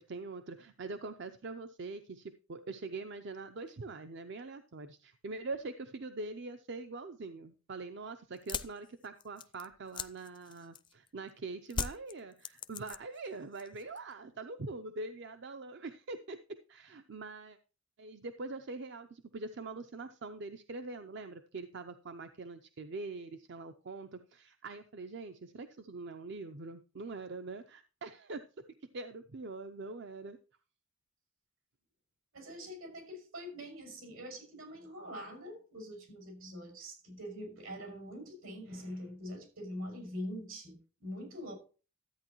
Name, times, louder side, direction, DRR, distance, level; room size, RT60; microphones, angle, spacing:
voice 1, 0.0-16.4 16.7-17.6 18.0-28.5 28.8-30.4, right 3 dB, 55° right, 0.6 m, -43 dB
sound 1, 8.3-11.1 11.7-13.3 13.5-14.1, left 5 dB, 25° left, 0.4 m, -40 dB
voice 2, 32.3-41.5, equal, 85° right, 6.3 m, -44 dB
13.0 x 8.9 x 3.0 m
head